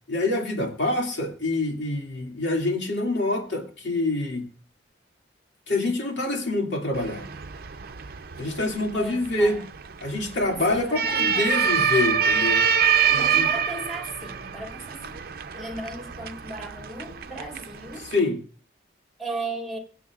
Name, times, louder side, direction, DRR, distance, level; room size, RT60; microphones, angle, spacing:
voice 1, 0.1-4.5 5.7-7.3 8.4-9.6 10.0-12.7 13.1-13.5 18.0-18.4, left 2 dB, 85° left, 2.4 m, -26 dB
sound 1, 6.9-18.2, right 7 dB, 55° right, 0.6 m, -26 dB
voice 2, 8.9-9.7 10.5-11.8 13.2-15.2 15.5-18.1 19.2-19.8, right 2 dB, ahead, 2.6 m, -36 dB
23.0 x 8.2 x 2.4 m
head